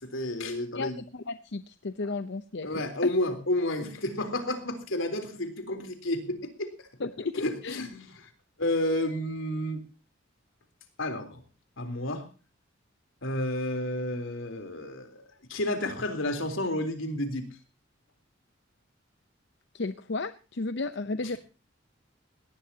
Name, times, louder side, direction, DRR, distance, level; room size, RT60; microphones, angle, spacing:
voice 1, 0.0-1.0 2.6-6.9 7.3-8.3 8.6-9.8 11.0-11.4 11.8-12.2 13.2-17.5 21.2-21.4, left 1 dB, 80° left, 7 dB, 3.7 m, -31 dB
voice 2, 0.7-2.8 7.0-7.8 19.7-21.4, left 3 dB, 60° left, 11 dB, 0.8 m, -34 dB
19.0 x 18.5 x 2.9 m, 0.35 s
head